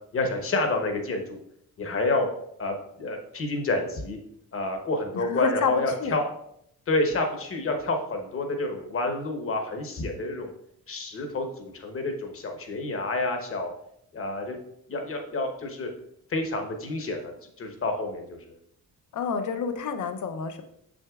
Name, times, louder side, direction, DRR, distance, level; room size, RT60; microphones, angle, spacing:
voice 1, 0.1-1.4 1.8-2.3 2.6-4.2 4.5-6.2 6.9-10.5 10.9-13.7 14.1-14.6 14.9-15.9 16.3-17.3 17.6-18.5, left 2 dB, 40° left, 4 dB, 1.0 m, -29 dB
voice 2, 5.1-6.2 19.1-20.6, left 6 dB, 60° left, 8 dB, 0.7 m, -28 dB
6.6 x 6.2 x 2.4 m, 0.73 s
wide cardioid pair, 150°, 33 cm